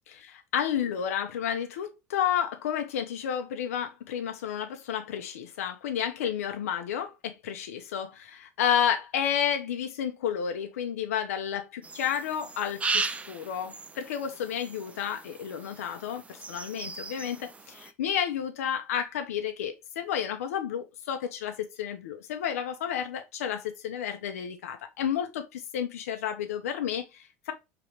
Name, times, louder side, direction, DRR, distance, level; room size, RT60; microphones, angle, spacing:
voice 1, 0.1-27.5, left 9 dB, 85° left, 0.6 m, -31 dB
sound 1, 11.8-17.9, right 4 dB, 15° right, 0.4 m, -37 dB
5.0 x 3.0 x 3.0 m
hypercardioid pair, 90°, 8 cm